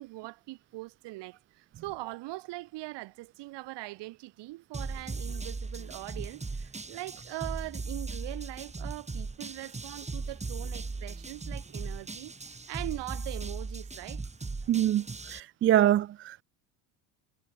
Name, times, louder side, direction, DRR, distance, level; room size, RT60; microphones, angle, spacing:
voice 1, 0.0-12.3 12.7-14.2, right 20 dB, 70° right, 4.2 m, -41 dB
sound 1, 4.7-15.4, right 3 dB, 15° right, 2.9 m, -38 dB
voice 2, 14.7-16.4, right 12 dB, 30° right, 0.4 m, -25 dB
supercardioid pair, 100°, 44 cm